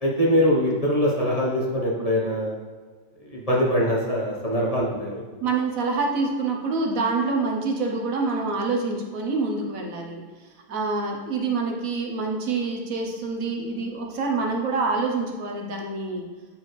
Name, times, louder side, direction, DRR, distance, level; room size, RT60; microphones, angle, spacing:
voice 1, 0.0-2.5 3.2-5.2, equal, 30° left, -5 dB, 1.0 m, -23 dB
voice 2, 5.4-10.2 10.7-16.3, right 3 dB, 70° right, 1 dB, 1.2 m, -26 dB
8.9 x 4.4 x 3.2 m, 1.4 s
omnidirectional pair, 1.5 m